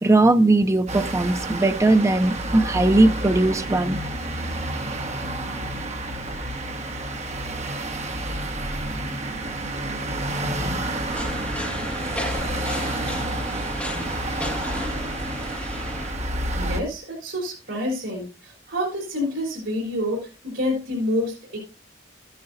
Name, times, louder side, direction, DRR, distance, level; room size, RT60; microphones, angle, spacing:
voice 1, 0.0-4.0, right 2 dB, 15° right, 0.5 m, -19 dB
sound 1, 0.9-16.8, right 1 dB, 35° right, 1.4 m, -29 dB
sound 2, 11.1-16.1, left 1 dB, 5° left, 1.8 m, -33 dB
voice 2, 16.6-21.6, left 1 dB, 75° right, 3.8 m, -28 dB
13.0 x 10.5 x 2.6 m
head